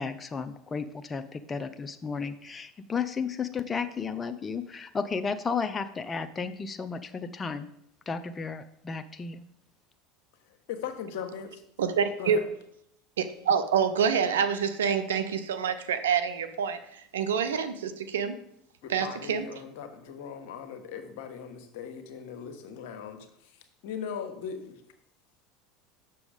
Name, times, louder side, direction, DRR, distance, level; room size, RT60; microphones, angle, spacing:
voice 1, 0.0-7.7 8.1-9.4, left 5 dB, 25° left, 9 dB, 0.5 m, -33 dB
voice 2, 10.7-11.6 12.2-12.5 18.8-23.6 23.8-24.8, left 7 dB, 70° left, 7 dB, 1.2 m, -39 dB
voice 3, 11.8-12.4 13.2-18.4 18.9-19.5, right 7 dB, 85° right, 10 dB, 0.7 m, -27 dB
6.9 x 6.1 x 5.0 m, 0.75 s
hypercardioid pair, 85°, 0 cm